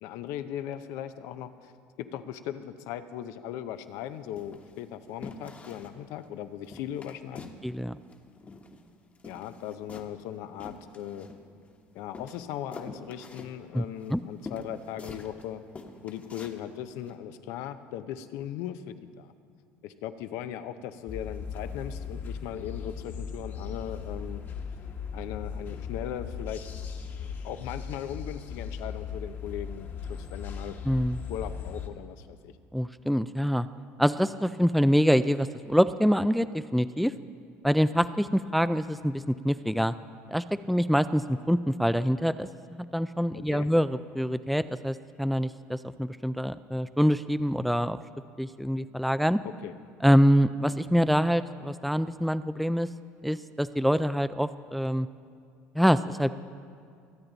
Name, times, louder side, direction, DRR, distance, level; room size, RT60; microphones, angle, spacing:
voice 1, 0.0-1.7 2.0-7.5 9.2-11.3 11.9-15.6 16.0-19.3 19.8-24.4 25.1-26.7 27.4-30.8 31.3-32.5 43.3-43.7 49.4-49.7, left 10 dB, 75° left, 11 dB, 0.7 m, -38 dB
sound 1, 3.7-4.0 4.4-4.8 5.2-6.0 6.3-6.4 6.6-7.6 7.9-8.9 9.1-11.7 12.1-15.4 15.7-16.6 17.0-17.1, left 3 dB, 30° left, 1.2 m, -45 dB
voice 2, 7.6-8.0 13.7-14.2 30.8-31.2 32.7-33.7 34.0-37.1 37.6-40.0 40.3-48.0 48.4-49.4 50.0-52.9 53.2-55.1 55.7-56.3, equal, ahead, 13 dB, 0.3 m, -25 dB
sound 2, 21.1-31.9, left 6 dB, 45° left, 1.4 m, -38 dB
23.5 x 8.8 x 4.0 m, 2.3 s
supercardioid pair, 95°, 5 cm